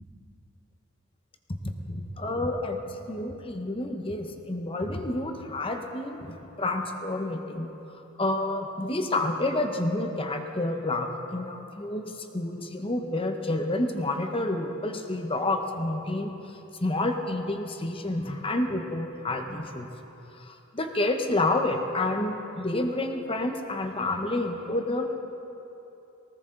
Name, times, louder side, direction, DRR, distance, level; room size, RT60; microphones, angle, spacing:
voice 1, 1.9-7.7 8.2-19.9 20.4-25.1, left 2 dB, 25° left, 5 dB, 1.0 m, -29 dB
19.5 x 18.5 x 3.9 m, 3.0 s
head